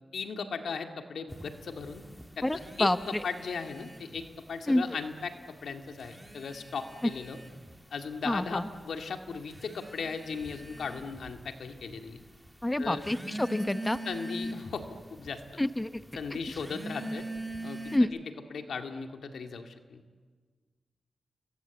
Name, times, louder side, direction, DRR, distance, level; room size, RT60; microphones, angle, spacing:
voice 1, 0.1-2.0 2.4-4.2 4.5-7.4 7.9-12.2 12.8-13.1 14.0-15.4 16.2-17.2 17.6-18.2 18.5-20.0, left 5 dB, 85° left, 5 dB, 2.1 m, -37 dB
sound 1, 1.3-4.4 4.7-5.4 5.9-18.0, right 1 dB, 5° right, 3.0 m, -42 dB
voice 2, 2.4-3.0 4.7-4.8 8.3-8.6 12.6-14.0 15.6-15.9 17.9-18.1, left 1 dB, 15° left, 11 dB, 0.9 m, -27 dB
29.5 x 23.0 x 8.3 m, 1.5 s
cardioid pair, 75°, 0 cm